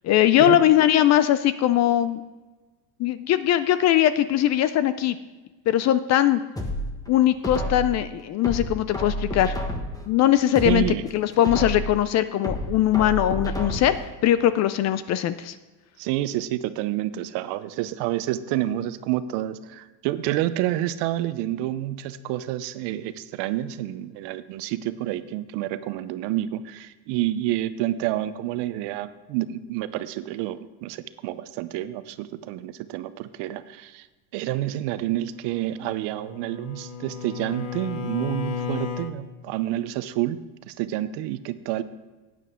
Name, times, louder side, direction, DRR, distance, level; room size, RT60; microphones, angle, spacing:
voice 1, 0.0-2.2 3.0-5.2 5.7-6.4 7.1-9.6 10.1-10.8 11.1-14.0 14.2-15.6, left 12 dB, 35° left, 14 dB, 0.4 m, -20 dB
sound 1, 6.6-8.0 8.4-10.1 10.4-12.0 12.4-14.1 14.4-14.5, equal, 5° left, 1.3 m, -30 dB
voice 2, 10.6-11.1 16.0-34.1 34.3-41.8, right 14 dB, 55° right, 13 dB, 0.7 m, -29 dB
Bowed string instrument, 35.8-39.2, left 7 dB, 60° left, 1.4 m, -33 dB
12.0 x 9.1 x 3.7 m, 1.2 s
supercardioid pair, 105°, 49 cm